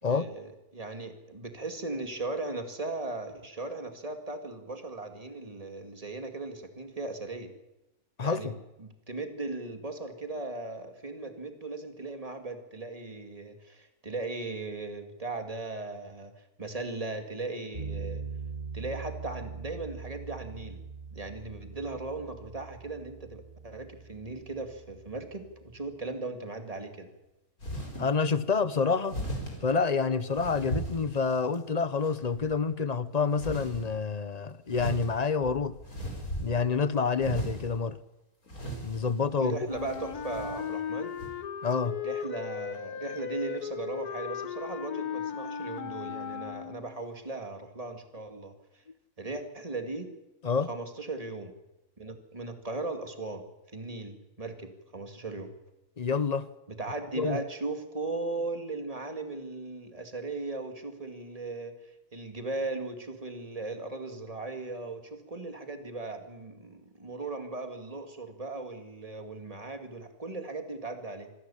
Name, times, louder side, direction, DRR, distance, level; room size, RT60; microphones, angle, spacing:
voice 1, 0.0-7.5 8.2-16.3 16.6-18.2 18.7-20.8 21.1-27.1 39.4-41.2 42.0-48.8 49.2-50.1 50.7-51.5 52.0-53.4 53.7-55.5 56.7-71.3, right 3 dB, 25° right, 2.4 m, -38 dB
voice 2, 8.2-8.5 28.0-29.2 29.6-35.7 36.4-38.0 38.8-39.6 41.6-42.0 50.4-50.7 56.0-56.5 57.2-57.4, left 5 dB, 35° left, 0.8 m, -28 dB
sound 1, 17.7-25.9, right 5 dB, 55° right, 8.0 m, -42 dB
sound 2, 27.6-28.1 29.1-29.6 30.3-31.5 32.0-32.5 33.4-33.9 34.7-36.7 37.2-37.7 38.5-39.2 39.7-40.7 41.2-41.3, right 1 dB, 70° left, 5.3 m, -37 dB
Wind instrument woodwind instrument, 39.7-47.0, left 7 dB, 90° left, 1.7 m, -36 dB
26.0 x 13.0 x 10.0 m
omnidirectional pair, 1.6 m